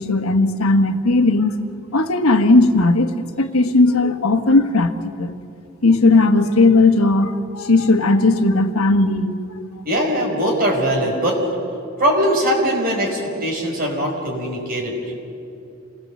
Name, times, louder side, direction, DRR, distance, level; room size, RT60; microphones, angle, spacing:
voice 1, 0.0-1.6 1.9-5.3 5.8-9.6, left 2 dB, 85° left, 7 dB, 1.3 m, -16 dB
voice 2, 9.9-11.4 12.0-15.1, equal, 40° right, 0 dB, 5.2 m, -21 dB
27.5 x 19.0 x 7.7 m, 2.6 s
head